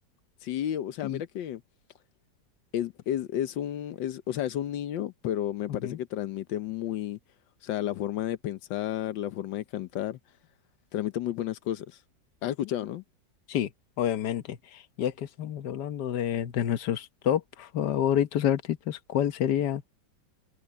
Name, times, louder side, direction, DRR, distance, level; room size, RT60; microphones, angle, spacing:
voice 1, 0.4-1.6 2.7-7.2 7.6-10.2 10.9-12.0 12.4-13.0, left 11 dB, 85° left, 1.5 m, -32 dB
voice 2, 14.0-19.8, left 10 dB, 70° left, 1.6 m, -28 dB
omnidirectional pair, 1.9 m